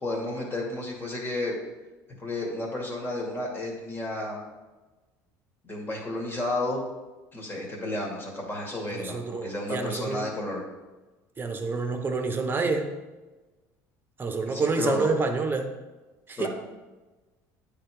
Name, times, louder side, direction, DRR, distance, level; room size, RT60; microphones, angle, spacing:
voice 1, 0.0-1.5 2.2-4.4 5.6-6.8 7.3-10.6 14.5-15.1 16.4-16.5, left 2 dB, 25° left, -2 dB, 2.3 m, -32 dB
voice 2, 8.9-10.3 11.4-13.0 14.2-15.8 16.3-16.5, right 3 dB, 25° right, 6 dB, 1.0 m, -28 dB
9.0 x 3.7 x 4.9 m, 1.2 s
supercardioid pair, 95°, 8 cm